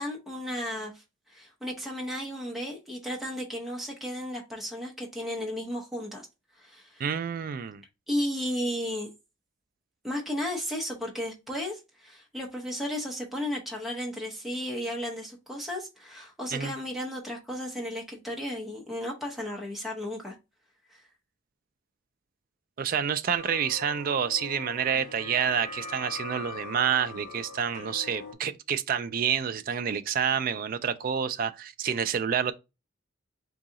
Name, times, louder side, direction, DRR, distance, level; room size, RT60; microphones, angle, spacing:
voice 1, 0.0-6.3 6.6-7.0 8.1-9.1 10.0-20.3 20.9-21.0, equal, ahead, 0.7 m, -34 dB
voice 2, 7.0-7.8 16.5-16.7 22.8-32.5, right 7 dB, 45° right, 0.3 m, -28 dB
sound 1, 23.4-28.3, left 3 dB, 40° left, 0.9 m, -41 dB
3.9 x 2.8 x 3.6 m
head